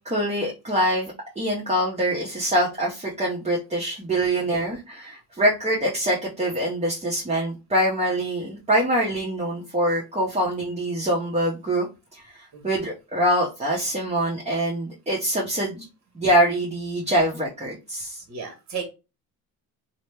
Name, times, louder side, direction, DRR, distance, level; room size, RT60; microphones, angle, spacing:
voice 1, 0.0-11.9 12.1-15.8 16.1-18.2, right 1 dB, 15° right, -3 dB, 1.0 m, -24 dB
voice 2, 18.3-18.8, right 6 dB, 45° right, 3 dB, 1.3 m, -35 dB
2.8 x 2.2 x 3.3 m, 0.28 s
supercardioid pair, 80°, 38 cm